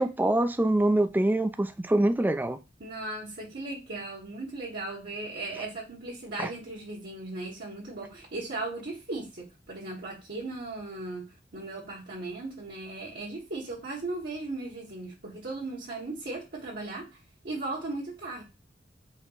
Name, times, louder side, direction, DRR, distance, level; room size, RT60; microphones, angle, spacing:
voice 1, 0.0-2.6 6.4-6.5, right 1 dB, 10° right, 0.3 m, -24 dB
voice 2, 2.8-18.4, right 2 dB, 60° right, 1.2 m, -37 dB
4.4 x 3.0 x 3.8 m
head